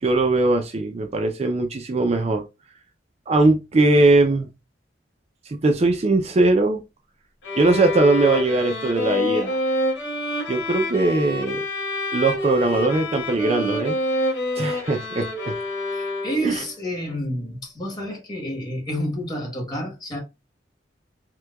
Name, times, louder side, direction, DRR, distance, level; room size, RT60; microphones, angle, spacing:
voice 1, 0.0-2.4 3.3-4.5 5.5-6.8 7.6-9.6 10.5-11.6 12.1-14.0 14.6-15.5 16.4-16.6, right 2 dB, 35° right, 0.4 m, -20 dB
sound 1, 7.4-16.6, left 1 dB, 75° left, 1.8 m, -27 dB
voice 2, 15.9-20.2, equal, 20° left, 1.2 m, -29 dB
4.5 x 2.2 x 2.3 m
head